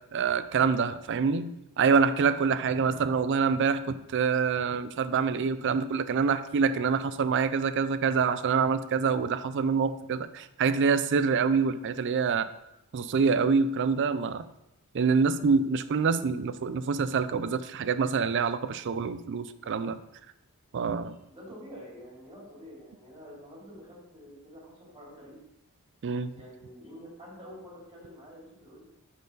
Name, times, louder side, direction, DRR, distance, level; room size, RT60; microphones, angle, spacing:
voice 1, 0.1-12.5 12.9-14.5 14.9-20.0 20.7-21.2 26.0-26.3, right 5 dB, 55° right, 13 dB, 0.4 m, -26 dB
voice 2, 15.8-16.2 21.0-25.4 26.1-28.8, equal, 20° right, -5 dB, 2.9 m, -48 dB
8.2 x 4.6 x 3.9 m, 0.86 s
head